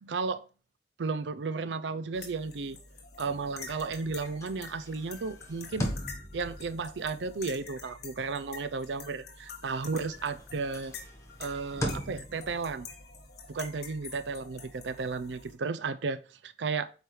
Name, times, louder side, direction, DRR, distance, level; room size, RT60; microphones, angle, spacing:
voice 1, 0.0-0.5 1.0-2.8 3.2-5.9 6.3-10.9 11.4-12.9 13.5-16.9, right 4 dB, 75° right, 0.5 m, -34 dB
sound 1, 2.1-15.6, left 5 dB, 60° left, 1.4 m, -48 dB
sound 2, 3.2-9.6 10.0-15.4, equal, 20° left, 1.2 m, -41 dB
8.2 x 4.5 x 3.2 m
head